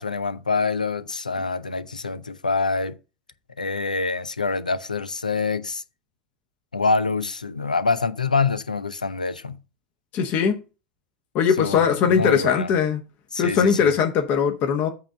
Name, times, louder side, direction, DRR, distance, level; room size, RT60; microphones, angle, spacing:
voice 1, 0.0-3.0 3.6-5.8 6.7-9.6 11.6-12.7 13.3-13.9, left 4 dB, 85° left, 0.5 m, -25 dB
voice 2, 10.1-10.6 11.3-13.0 13.4-14.9, left 6 dB, 45° left, 1.1 m, -20 dB
8.2 x 3.7 x 6.4 m
figure-of-eight pair, 75°, 4 cm